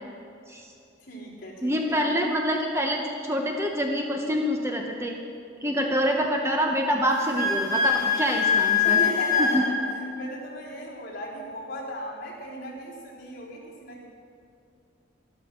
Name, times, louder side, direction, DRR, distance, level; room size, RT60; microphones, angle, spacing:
voice 1, 1.0-2.0 8.8-9.7 10.2-14.0, equal, 50° left, -6 dB, 3.7 m, -36 dB
voice 2, 1.6-5.1 5.6-9.0 9.4-9.7, equal, 15° right, 1 dB, 0.8 m, -26 dB
Wind instrument woodwind instrument, 7.1-9.7, left 6 dB, 15° left, 2.2 m, -23 dB
12.5 x 12.0 x 6.2 m, 2.5 s
head